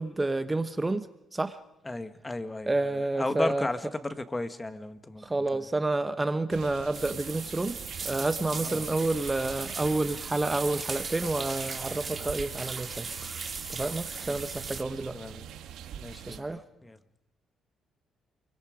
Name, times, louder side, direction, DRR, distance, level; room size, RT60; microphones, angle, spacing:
voice 1, 0.0-1.6 2.7-3.7 5.2-7.8 8.0-13.1 13.7-15.2 16.2-16.6, right 2 dB, 20° right, 11 dB, 1.2 m, -29 dB
voice 2, 1.8-5.3 5.5-5.7 8.6-8.8 14.2-14.4 15.1-15.5 15.9-17.0, left 2 dB, 20° left, 11 dB, 1.5 m, -35 dB
sound 1, 6.5-16.4, right 10 dB, 85° right, 1.7 m, -44 dB
sound 2, 6.9-14.8, right 4 dB, 35° right, 2.0 m, -38 dB
28.5 x 23.5 x 5.1 m, 0.84 s
cardioid pair, 90°, 0 cm